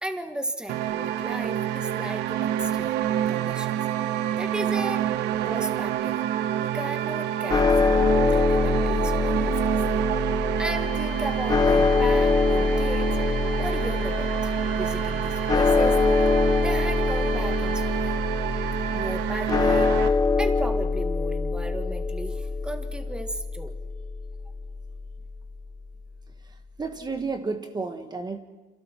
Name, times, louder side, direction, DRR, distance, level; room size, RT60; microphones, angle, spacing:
voice 1, 0.0-3.0 3.3-3.8 4.4-5.1 5.4-6.2 6.6-9.7 10.2-10.3 10.6-13.2 13.6-16.0 16.5-18.2 18.9-23.7, right 1 dB, 5° right, 7 dB, 1.5 m, -35 dB
sound 1, 0.7-20.1, right 11 dB, 90° right, 0.9 m, -28 dB
sound 2, 7.5-25.7, left 4 dB, 20° left, 1.0 m, -24 dB
sound 3, 10.5-18.3, left 4 dB, 60° left, 2.7 m, -44 dB
voice 2, 26.5-28.4, right 4 dB, 25° right, 7 dB, 1.4 m, -32 dB
29.0 x 27.0 x 4.5 m, 1.2 s
cardioid pair, 110°, 17 cm